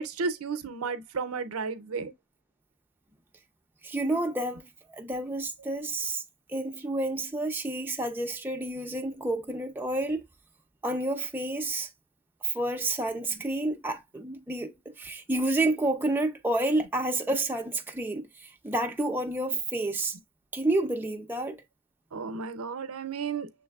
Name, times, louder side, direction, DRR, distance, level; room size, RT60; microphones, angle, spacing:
voice 1, 0.0-2.1 22.1-23.5, right 5 dB, 75° right, 0.6 m, -33 dB
voice 2, 3.8-6.2 6.5-10.2 10.8-11.9 12.4-20.2 20.5-21.6, right 2 dB, 10° right, 0.5 m, -30 dB
6.4 x 3.2 x 2.3 m
head